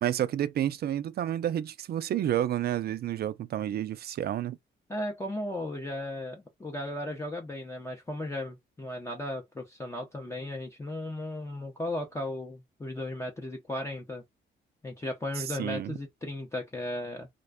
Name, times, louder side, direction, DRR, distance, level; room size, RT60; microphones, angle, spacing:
voice 1, 0.0-4.6 15.6-15.9, right 11 dB, 55° right, 0.4 m, -30 dB
voice 2, 4.9-14.2 14.8-17.3, left 1 dB, 15° left, 0.5 m, -36 dB
2.5 x 2.1 x 2.3 m
cardioid pair, 90°, 20 cm